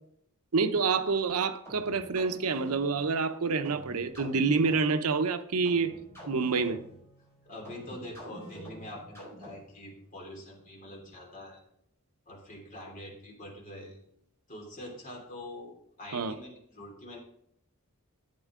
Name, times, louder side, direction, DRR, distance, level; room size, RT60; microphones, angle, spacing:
voice 1, 0.5-6.0 6.3-6.8 16.1-16.3, right 4 dB, 90° right, 0.7 m, -27 dB
sound 1, 1.6-9.9, equal, 10° left, 4.9 m, -48 dB
voice 2, 7.4-11.6 12.3-14.0 14.5-17.2, left 1 dB, 35° left, 3.0 m, -45 dB
12.0 x 8.2 x 3.7 m
head